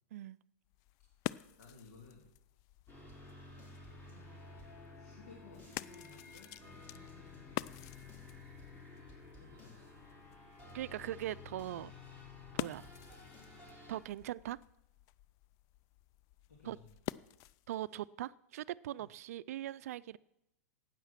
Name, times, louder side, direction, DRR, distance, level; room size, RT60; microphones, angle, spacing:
sound 1, 0.6-17.8, left 16 dB, 40° left, 0.3 m, -48 dB
voice 1, 1.6-2.3 4.9-6.5 9.4-9.9 16.5-16.9 17.9-18.0 19.0-19.1, left 4 dB, 80° left, 2.8 m, -57 dB
sound 2, 2.9-14.0, left 3 dB, 25° left, 5.0 m, -53 dB
voice 2, 10.7-11.9 12.5-12.9 13.9-14.6 16.7-16.8 17.7-20.2, right 13 dB, 65° right, 0.4 m, -41 dB
13.0 x 9.0 x 5.9 m
hypercardioid pair, 110°, 9 cm